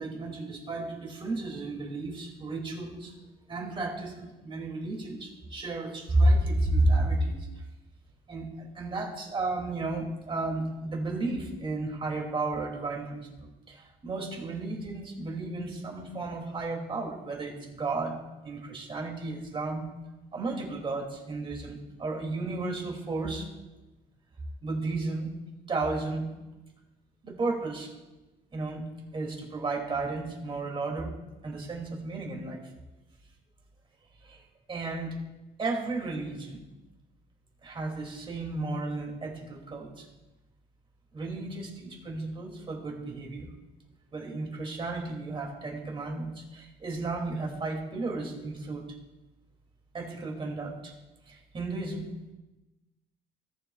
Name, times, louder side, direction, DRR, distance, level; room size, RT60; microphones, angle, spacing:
voice 1, 0.0-3.1 3.5-7.5 8.3-18.2 18.4-19.9 20.3-23.5 24.6-25.3 25.7-26.3 27.2-27.9 28.5-28.8 29.1-31.1 31.4-32.7 34.2-34.4 34.7-35.2 35.6-36.6 37.6-40.1 41.1-43.5 44.1-48.8 49.9-50.9 51.3-52.1, right 2 dB, 30° right, 0 dB, 2.6 m, -32 dB
18.0 x 6.8 x 2.4 m, 1.1 s
cardioid pair, 110°, 17 cm